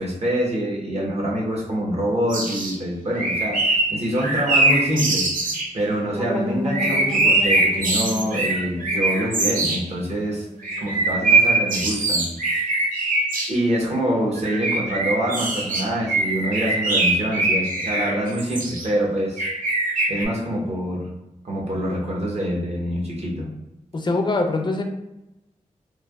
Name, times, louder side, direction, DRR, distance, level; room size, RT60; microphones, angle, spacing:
voice 1, 0.0-5.3 5.7-10.4 10.8-12.3 12.5-12.6 13.5-19.4 20.1-21.1 21.4-23.5, equal, 50° right, -3 dB, 0.9 m, -25 dB
sound 1, 2.3-2.7 3.1-5.7 6.7-9.8 10.6-13.5 14.4-18.9 19.4-20.2, right 2 dB, 90° right, 0.5 m, -22 dB
sound 2, 6.1-11.0, left 1 dB, 20° right, 0.6 m, -33 dB
voice 2, 23.9-24.8, left 2 dB, 35° left, 3 dB, 0.4 m, -23 dB
3.1 x 2.2 x 2.3 m, 0.92 s
cardioid pair, 60°, 14 cm